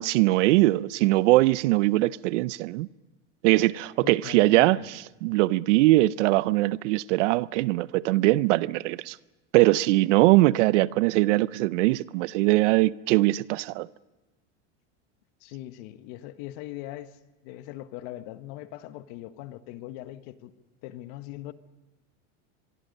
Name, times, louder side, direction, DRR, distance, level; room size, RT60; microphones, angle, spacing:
voice 1, 0.0-2.9 3.4-9.2 9.5-13.9, right 19 dB, 80° right, 0.7 m, -21 dB
voice 2, 4.0-4.8 15.4-17.2 17.4-20.5 20.8-21.5, left 14 dB, 60° left, 1.5 m, -40 dB
25.0 x 23.0 x 5.4 m
supercardioid pair, 130°, 36 cm